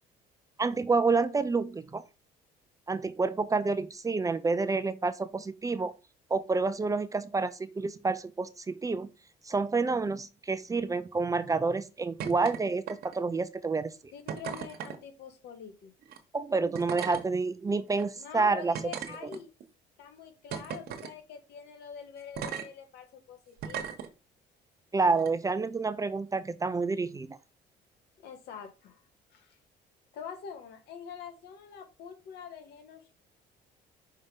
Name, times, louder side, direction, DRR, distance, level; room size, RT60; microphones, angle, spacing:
voice 1, 0.6-2.0 2.9-5.9 6.3-9.1 9.5-13.9 16.3-18.7 24.9-27.4, right 4 dB, 20° right, 0.5 m, -29 dB
sound 1, 12.2-12.6 12.9-13.3 14.3-15.0 16.0-16.2 16.7-17.2 17.9-18.0 18.7-19.6 20.5-21.1 22.4-22.7 23.6-24.1 25.2-25.3, right 8 dB, 65° right, 1.2 m, -37 dB
voice 2, 14.1-15.9 18.2-19.5 20.0-24.0 28.2-29.0 29.3-29.6 30.1-33.2, left 7 dB, 80° left, 1.7 m, -45 dB
5.5 x 3.6 x 5.3 m
cardioid pair, 110°, 17 cm